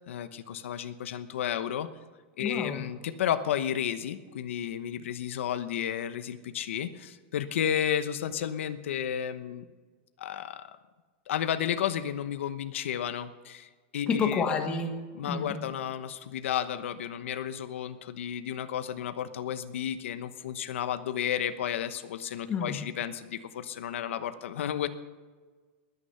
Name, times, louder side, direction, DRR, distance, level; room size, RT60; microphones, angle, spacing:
voice 1, 0.0-1.9 2.4-9.6 10.2-10.8 11.3-14.4 15.2-24.9, left 9 dB, 85° left, 11 dB, 1.0 m, -32 dB
voice 2, 2.4-2.8 14.1-15.5 22.5-22.8, left 5 dB, 15° left, 4 dB, 1.5 m, -29 dB
21.0 x 9.8 x 5.7 m, 1.4 s
supercardioid pair, 175°, 7 cm